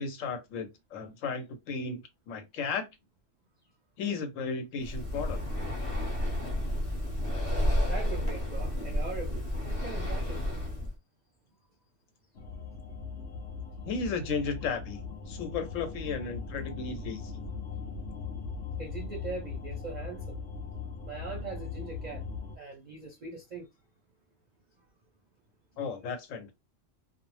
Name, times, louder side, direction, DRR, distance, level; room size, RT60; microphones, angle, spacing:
voice 1, 0.0-2.9 4.0-5.4 13.9-17.4 25.8-26.5, left 5 dB, 85° left, 1.0 m, -35 dB
Breathing, 4.8-10.9, left 1 dB, 30° left, 0.8 m, -31 dB
voice 2, 7.9-10.5 18.8-20.4 21.0-22.2 22.6-23.7, right 4 dB, 50° right, 0.5 m, -41 dB
sound 1, 12.3-22.6, left 5 dB, 60° left, 0.7 m, -39 dB
2.3 x 2.0 x 3.1 m
omnidirectional pair, 1.3 m